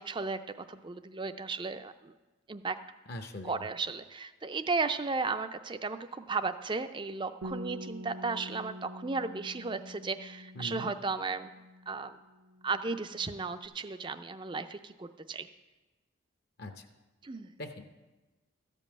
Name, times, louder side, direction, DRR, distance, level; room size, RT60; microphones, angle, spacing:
voice 1, 0.0-2.1 2.5-2.8 3.4-11.6 11.9-12.2 12.6-15.5 17.2-17.5, right 4 dB, 20° right, 10 dB, 0.4 m, -35 dB
voice 2, 3.1-3.6 10.5-10.9 16.6-16.9 17.6-18.1, equal, 45° left, 7 dB, 0.7 m, -42 dB
Bass guitar, 7.4-12.1 12.4-13.7, left 1 dB, 75° right, 0.8 m, -46 dB
13.5 x 5.3 x 8.5 m, 1.2 s
head